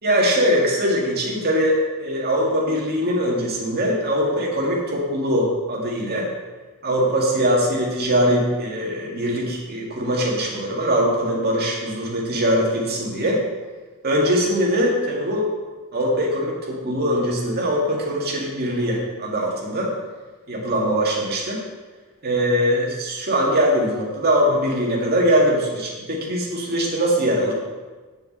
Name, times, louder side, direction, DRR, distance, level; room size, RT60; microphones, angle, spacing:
voice 1, 0.0-6.3 6.8-13.4 14.0-15.5 15.9-19.9 20.5-21.6 22.2-27.5, equal, 45° right, -3 dB, 2.3 m, -21 dB
7.1 x 6.5 x 7.5 m, 1.3 s
head